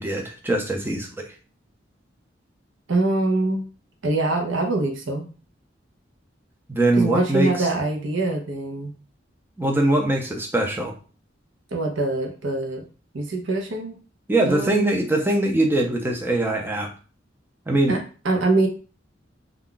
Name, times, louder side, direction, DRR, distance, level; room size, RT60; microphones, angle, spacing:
voice 1, 0.0-1.3 6.7-7.7 9.6-10.9 14.3-16.9 17.7-18.0, right 1 dB, 10° right, 2 dB, 0.5 m, -22 dB
voice 2, 2.9-3.7 4.0-5.2 6.9-8.9 11.7-12.8 13.1-14.0 14.4-14.9 17.9-18.0 18.2-18.7, right 2 dB, 80° right, 2 dB, 0.7 m, -23 dB
2.3 x 2.1 x 3.7 m, 0.36 s
head